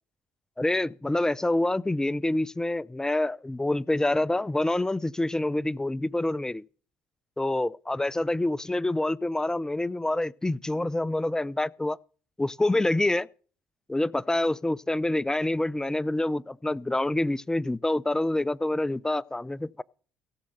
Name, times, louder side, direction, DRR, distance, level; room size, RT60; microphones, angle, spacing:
voice 1, 0.6-6.6 7.4-12.0 12.4-13.3 13.9-19.8, left 1 dB, 10° left, 0.7 m, -27 dB
17.0 x 7.6 x 5.6 m
hypercardioid pair, 65°, 5 cm